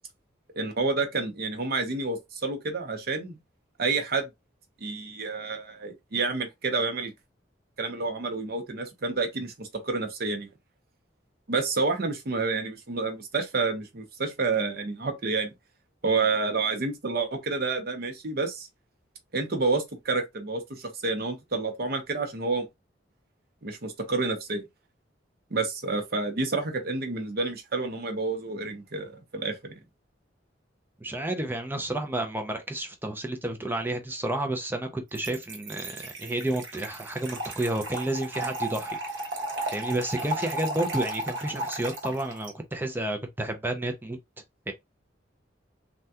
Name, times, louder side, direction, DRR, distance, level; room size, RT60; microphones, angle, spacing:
voice 1, 0.6-3.4 3.8-4.3 4.8-7.1 7.8-10.5 11.5-15.5 16.0-18.7 19.3-22.7 23.6-24.6 25.5-29.7, right 3 dB, 55° right, 0.8 m, -29 dB
voice 2, 31.0-39.3 39.7-44.2 44.7-44.8, right 1 dB, 10° right, 0.5 m, -31 dB
Trickle dribble / Fill (with liquid), 35.1-42.5, right 1 dB, 85° right, 1.0 m, -34 dB
3.4 x 2.2 x 2.8 m
head